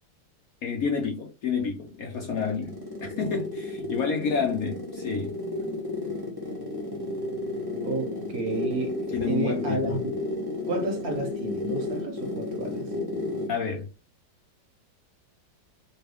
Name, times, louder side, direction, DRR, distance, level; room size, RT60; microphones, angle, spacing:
voice 1, 0.6-2.7 3.0-5.3 9.1-9.9 13.5-13.9, left 5 dB, 65° left, 0.9 m, -29 dB
sound 1, 1.9-13.6, left 2 dB, 20° right, 0.7 m, -33 dB
voice 2, 7.8-10.2 10.7-12.9, right 2 dB, 60° right, 1.1 m, -31 dB
3.4 x 2.3 x 3.3 m
omnidirectional pair, 2.0 m